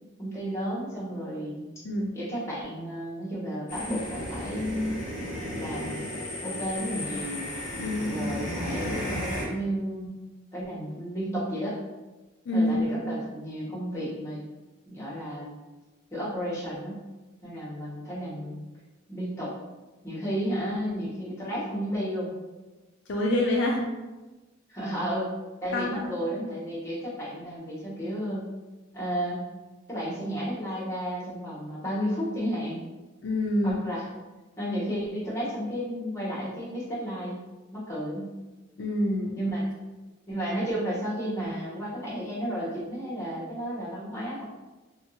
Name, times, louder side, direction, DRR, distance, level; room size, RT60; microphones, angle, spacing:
voice 1, 0.2-1.6 2.1-5.0 5.5-6.1 6.4-7.5 8.1-10.1 10.5-11.8 12.5-14.4 14.9-15.5 16.1-17.0 17.4-18.6 19.1-19.6 20.0-22.3 24.7-25.3 25.6-28.5 28.9-29.4 29.9-32.8 33.6-34.1 34.6-37.4 37.7-38.3 39.4-39.7 40.3-44.4, equal, 15° left, -7 dB, 0.9 m, -32 dB
sound 1, 3.7-9.4, left 1 dB, 40° left, 1.0 m, -34 dB
voice 2, 7.8-8.2 12.5-12.8 23.1-23.9 25.7-26.1 33.2-33.8 38.8-39.3, left 1 dB, 60° left, -1 dB, 0.3 m, -26 dB
2.7 x 2.6 x 2.7 m, 1.2 s
head